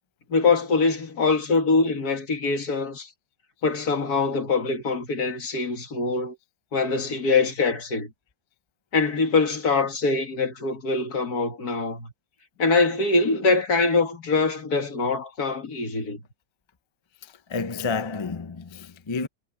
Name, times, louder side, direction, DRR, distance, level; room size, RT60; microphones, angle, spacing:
voice 1, 0.3-3.1 3.6-6.4 6.7-8.1 8.9-12.1 12.6-16.2, left 3 dB, 65° left, 2.7 m, -23 dB
voice 2, 17.5-19.3, left 4 dB, 40° left, 0.4 m, -30 dB
omnidirectional pair, 1.8 m